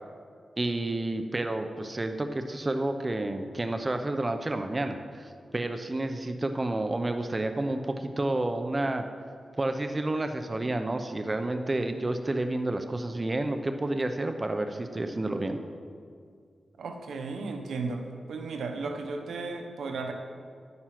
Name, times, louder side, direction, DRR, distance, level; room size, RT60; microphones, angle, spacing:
voice 1, 0.6-9.0 9.6-15.6, right 2 dB, 30° right, 7 dB, 0.8 m, -30 dB
voice 2, 16.8-20.1, right 3 dB, 90° right, 5 dB, 1.0 m, -35 dB
10.5 x 9.5 x 5.9 m, 2.2 s
cardioid pair, 70°, 0 cm